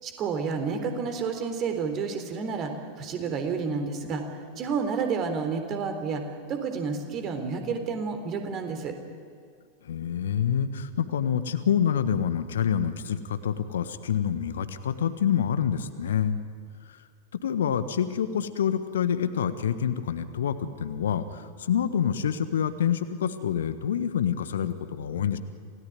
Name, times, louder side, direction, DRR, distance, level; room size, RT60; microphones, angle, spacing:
voice 1, 0.0-6.2 6.5-8.9, right 5 dB, 35° right, 6 dB, 3.7 m, -30 dB
voice 2, 9.8-16.4 16.9-17.0 17.3-25.4, left 8 dB, 65° left, 11 dB, 1.4 m, -27 dB
27.5 x 18.0 x 9.4 m, 2.3 s
figure-of-eight pair, 90°, 0 cm